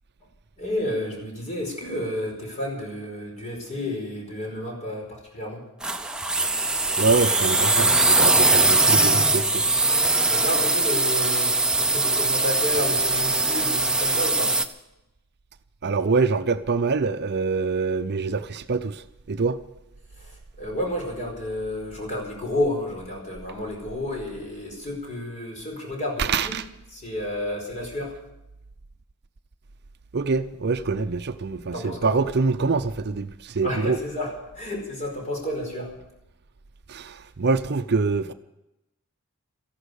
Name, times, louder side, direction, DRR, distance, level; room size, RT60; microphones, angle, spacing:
voice 1, 0.6-5.6 10.1-14.5 20.2-26.6 26.9-28.2 31.7-32.1 33.6-35.9, left 1 dB, 35° left, 5.0 m, -31 dB
sound 1, 5.8-14.7, right 2 dB, 5° right, 0.7 m, -21 dB
voice 2, 7.0-9.6 15.8-19.0 19.3-19.6 26.2-26.6 30.1-34.0 36.9-38.3, right 4 dB, 50° right, 0.6 m, -25 dB
14.0 x 11.5 x 8.3 m
head